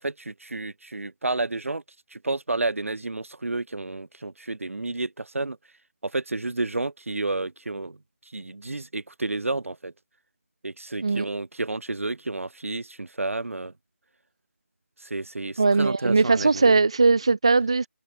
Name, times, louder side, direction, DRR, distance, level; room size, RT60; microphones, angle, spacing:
voice 1, 0.0-1.8 2.1-5.6 6.0-8.0 8.3-9.9 10.6-13.7 15.0-16.7, right 2 dB, 60° right, 5.0 m, -31 dB
voice 2, 15.6-17.9, right 3 dB, 20° right, 0.7 m, -20 dB
open air
figure-of-eight pair, 180°, 8 cm